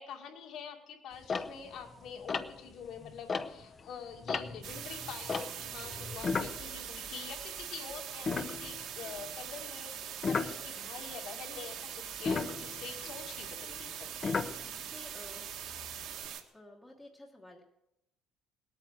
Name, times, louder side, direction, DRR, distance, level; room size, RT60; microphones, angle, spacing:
voice 1, 0.0-14.4, left 6 dB, 55° left, 3 dB, 2.3 m, -46 dB
sound 1, 1.2-3.8 4.1-7.6 7.9-8.0 8.3-9.1 10.2-10.6 12.1-15.0 15.6-16.3, left 4 dB, 25° left, 0.7 m, -36 dB
sound 2, 4.6-16.4, right 9 dB, 55° right, 1.7 m, -42 dB
voice 2, 14.7-15.5 16.5-17.7, left 1 dB, 10° left, -2 dB, 1.3 m, -52 dB
19.0 x 8.9 x 7.7 m, 0.89 s
cardioid pair, 175°, 0 cm